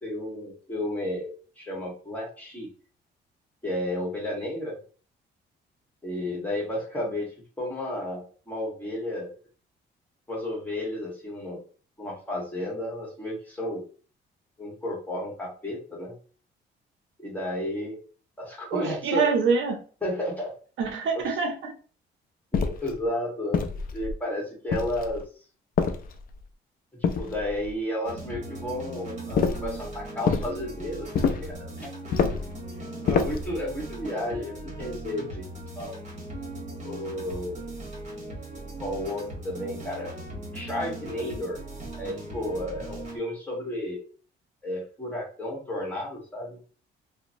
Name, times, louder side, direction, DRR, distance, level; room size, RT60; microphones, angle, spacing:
voice 1, 0.0-2.7 3.6-4.8 6.0-9.3 10.3-11.6 12.0-13.8 14.6-16.1 17.2-18.0 18.4-19.3 20.0-20.5 21.1-21.3 22.5-25.2 26.9-31.1 31.4-31.9 33.0-35.5 35.8-36.0 36.8-37.6 38.8-40.1 40.5-41.6 42.0-44.0 44.6-46.6, left 1 dB, 10° left, 1.2 m, -32 dB
voice 2, 18.7-19.8 20.8-21.7, right 5 dB, 75° right, 0.6 m, -25 dB
sound 1, 22.5-22.9 23.5-24.2 24.7-25.2 25.8-26.4 27.0-27.7 29.4-29.7 30.3-30.5 31.1-31.5 32.1-32.5 33.1-33.5, left 5 dB, 45° left, 0.4 m, -26 dB
sound 2, 28.0-43.2, right 1 dB, 35° right, 1.2 m, -39 dB
2.8 x 2.0 x 2.6 m
cardioid pair, 90°, 20 cm